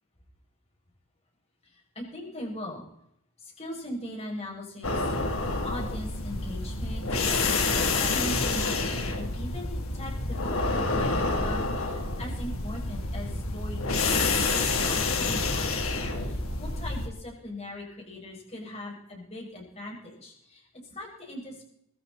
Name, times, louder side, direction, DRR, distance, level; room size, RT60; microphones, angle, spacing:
voice 1, 1.6-2.8 3.4-5.1 5.6-7.2 7.7-14.3 14.8-15.8 16.1-21.6, left 1 dB, 30° left, -2 dB, 7.1 m, -40 dB
sound 1, 4.8-17.1, left 3 dB, 85° left, 3.2 m, -28 dB
20.5 x 15.0 x 4.4 m, 0.73 s
head